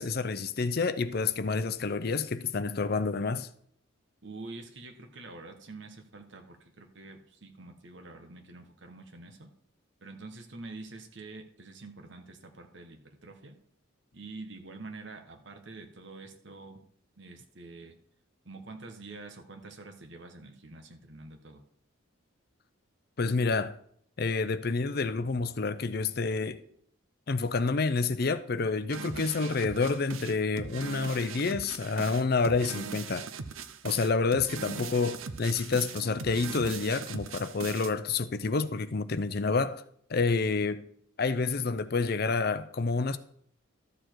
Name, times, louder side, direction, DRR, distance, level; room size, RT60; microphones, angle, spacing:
voice 1, 0.0-3.5 23.2-23.8 24.2-26.6 27.3-33.3 33.8-39.8 40.1-40.9 41.2-43.2, left 4 dB, 50° left, 0.5 m, -28 dB
voice 2, 4.2-9.5 10.0-13.6 14.1-16.8 17.2-18.0 18.4-21.6, right 3 dB, 60° right, 1.2 m, -46 dB
sound 1, 28.9-37.9, right 5 dB, 75° right, 0.7 m, -40 dB
12.5 x 6.9 x 4.6 m
head